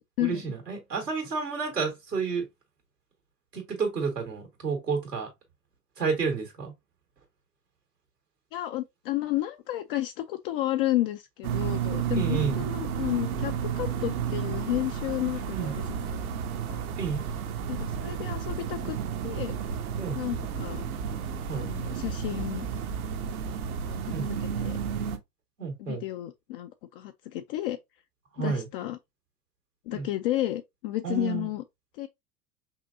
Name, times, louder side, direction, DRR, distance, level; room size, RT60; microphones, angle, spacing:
voice 1, 0.2-2.5 3.5-5.3 6.0-6.7 12.1-12.6 15.4-15.7 17.0-17.2 20.0-20.2 21.5-21.7 24.1-24.3 25.6-26.0 28.3-28.7 29.9-30.1 31.0-31.5, right 5 dB, 90° right, 2.0 m, -30 dB
voice 2, 8.5-16.2 16.6-16.9 17.7-19.0 19.2-19.6 20.2-20.8 21.5-22.7 23.9-24.1 24.4-24.8 25.8-27.8 28.4-29.0 29.9-31.6 31.9-32.1, left 15 dB, 40° left, 0.4 m, -32 dB
sound 1, 11.4-25.2, right 7 dB, 65° right, 0.9 m, -32 dB
5.4 x 2.6 x 2.6 m
figure-of-eight pair, 85°, 47 cm